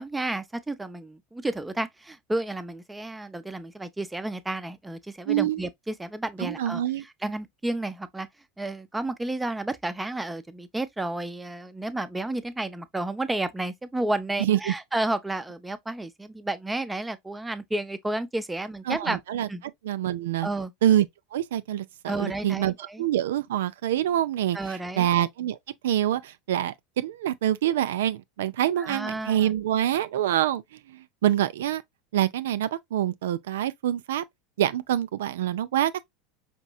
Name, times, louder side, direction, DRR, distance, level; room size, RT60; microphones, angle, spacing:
voice 1, 0.0-8.3 8.6-19.2 19.5-19.6 20.4-20.7 22.1-23.1 24.5-25.1 28.8-29.5, right 2 dB, 10° right, 0.6 m, -31 dB
voice 2, 5.3-5.6 6.4-7.0 14.4-14.7 18.9-19.5 19.8-20.5 20.8-25.6 25.8-30.6 30.9-31.8 32.1-34.2 34.6-36.0, right 11 dB, 70° right, 0.4 m, -26 dB
5.2 x 2.9 x 2.3 m
hypercardioid pair, 80°, 0 cm